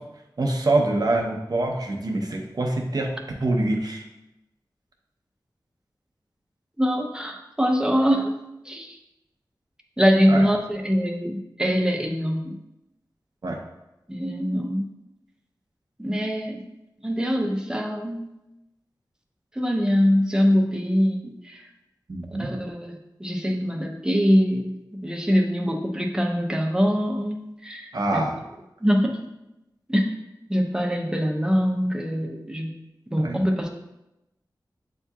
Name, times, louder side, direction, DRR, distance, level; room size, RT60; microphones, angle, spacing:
voice 1, 0.4-3.1 3.4-4.0 10.3-10.5 13.4-13.6 22.1-22.5 27.9-28.4 33.2-33.4, right 2 dB, 55° right, 1 dB, 0.7 m, -25 dB
voice 2, 6.8-8.3 8.7-9.0 10.0-12.6 14.1-14.9 16.0-16.6 17.0-18.3 19.6-21.6 22.4-22.9 23.2-28.2 28.8-29.2 29.9-30.1 30.5-32.7 33.1-33.7, equal, 10° right, 1 dB, 0.7 m, -23 dB
7.8 x 2.7 x 2.3 m, 0.91 s
wide cardioid pair, 65°, 8 cm